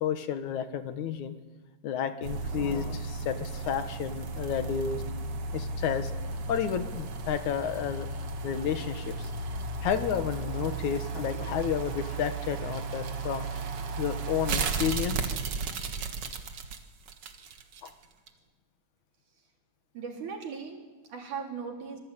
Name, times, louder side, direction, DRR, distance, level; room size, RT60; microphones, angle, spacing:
voice 1, 0.0-1.4 1.8-5.0 5.5-6.1 6.5-8.1 8.4-9.3 9.8-13.6 14.0-15.3 17.8-17.9, left 8 dB, 80° left, 9 dB, 2.8 m, -31 dB
sound 1, 2.2-17.9 18.3-18.4, right 4 dB, 55° right, 2.4 m, -34 dB
voice 2, 19.9-22.0, right 6 dB, 90° right, 1 dB, 5.2 m, -38 dB
26.0 x 21.5 x 9.1 m, 1.2 s
omnidirectional pair, 3.4 m